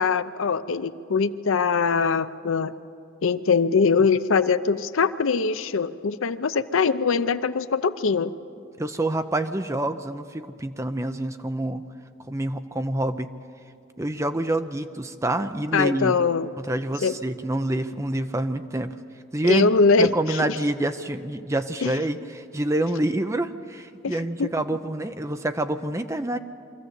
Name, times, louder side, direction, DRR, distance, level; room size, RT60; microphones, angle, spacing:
voice 1, 0.0-2.7 3.2-8.3 15.7-16.5 17.0-17.2 19.5-20.5 21.8-21.9 24.0-24.5, left 5 dB, 70° left, 13 dB, 0.6 m, -22 dB
voice 2, 8.8-11.8 12.3-13.3 14.0-16.2 16.6-18.9 19.3-26.4, right 1 dB, 15° right, 9 dB, 0.5 m, -27 dB
23.5 x 14.5 x 8.2 m, 2.5 s
head